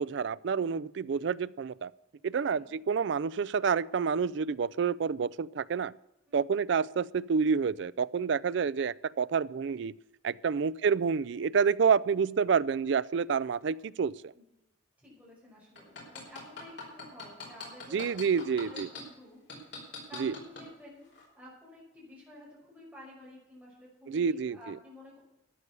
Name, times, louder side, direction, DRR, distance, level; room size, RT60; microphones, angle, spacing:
voice 1, 0.0-1.9 2.2-5.9 6.3-9.9 10.2-14.3 17.9-18.9 20.2-20.3 24.1-24.8, right 6 dB, 60° right, 19 dB, 0.4 m, -28 dB
voice 2, 6.3-6.6 10.4-10.8 14.3-14.4 15.0-18.3 18.6-25.2, left 1 dB, 10° right, -6 dB, 5.6 m, -52 dB
sound 1, 15.8-19.0 19.5-20.6 21.1-21.2, left 5 dB, 55° left, 4.8 m, -41 dB
13.0 x 9.6 x 6.8 m, 0.93 s
head